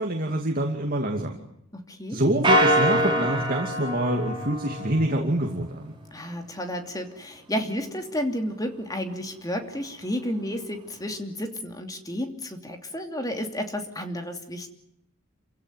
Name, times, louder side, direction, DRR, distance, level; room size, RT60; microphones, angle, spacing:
voice 1, 0.0-1.4 2.1-5.9, right 1 dB, 40° right, 2 dB, 2.6 m, -26 dB
voice 2, 1.7-2.2 6.1-14.7, equal, 15° left, 5 dB, 2.9 m, -32 dB
sound 1, 2.4-5.1, equal, 20° right, 4.3 m, -24 dB
28.0 x 16.5 x 9.6 m, 0.81 s
head